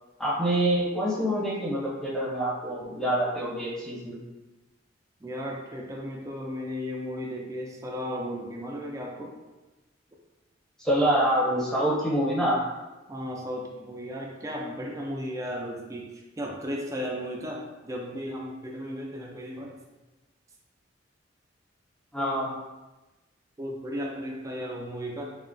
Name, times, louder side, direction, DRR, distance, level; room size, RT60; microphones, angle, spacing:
voice 1, 0.2-4.2 10.8-12.6 22.1-22.5, right 1 dB, 5° left, -8 dB, 0.7 m, -26 dB
voice 2, 5.2-9.3 13.1-16.1 16.4-19.8 23.6-25.4, equal, 15° right, -1 dB, 0.3 m, -35 dB
2.9 x 2.1 x 2.5 m, 1.1 s
head